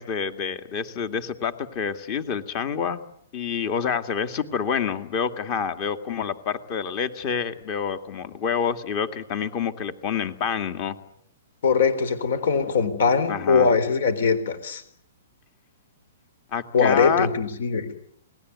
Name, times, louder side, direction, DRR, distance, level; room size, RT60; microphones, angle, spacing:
voice 1, 0.0-3.0 3.3-11.0 13.3-13.7 16.5-17.3, left 7 dB, 35° left, 10 dB, 2.2 m, -27 dB
voice 2, 11.6-14.8 16.7-17.9, left 5 dB, 70° left, 14 dB, 3.9 m, -21 dB
28.0 x 20.0 x 9.6 m, 0.71 s
hypercardioid pair, 155°, 0 cm